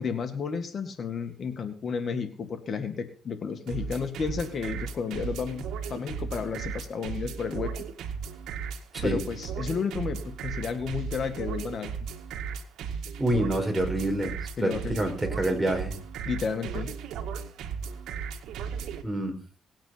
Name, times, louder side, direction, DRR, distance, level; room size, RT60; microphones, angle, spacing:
voice 1, 0.0-5.6 5.9-7.8 9.0-11.9 14.6-15.1 16.3-16.9, left 5 dB, 50° left, 8 dB, 2.0 m, -32 dB
sound 1, 3.7-19.0, right 6 dB, 85° right, 1.9 m, -36 dB
voice 2, 13.2-16.0 19.0-19.3, right 1 dB, 15° right, 4 dB, 4.8 m, -27 dB
19.5 x 8.8 x 5.9 m, 0.41 s
cardioid pair, 90°, 0 cm